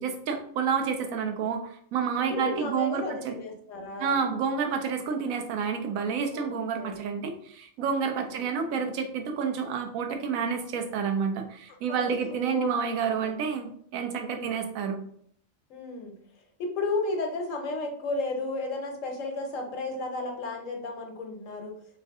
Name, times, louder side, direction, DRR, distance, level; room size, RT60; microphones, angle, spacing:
voice 1, 0.0-3.4 4.0-15.0, right 6 dB, 85° right, 5 dB, 1.0 m, -29 dB
voice 2, 2.3-4.2 6.3-7.0 8.2-8.5 11.9-12.7 13.2-13.3 14.3-14.5 15.7-16.1 16.6-21.7, left 2 dB, 70° left, 3 dB, 1.1 m, -33 dB
3.1 x 2.6 x 3.5 m, 0.63 s
omnidirectional pair, 1.4 m